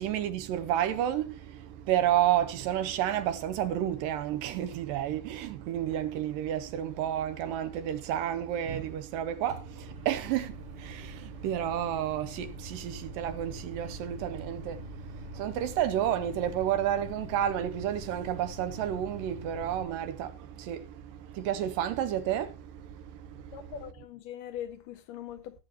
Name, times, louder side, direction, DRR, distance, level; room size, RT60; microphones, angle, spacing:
voice 1, 0.0-23.7, right 11 dB, 75° right, 2.3 m, -31 dB
Microwave oven, 9.5-19.8, left 1 dB, 30° right, 2.0 m, -45 dB
voice 2, 23.5-25.6, left 10 dB, 80° left, 2.1 m, -41 dB
18.5 x 7.8 x 2.9 m
omnidirectional pair, 4.1 m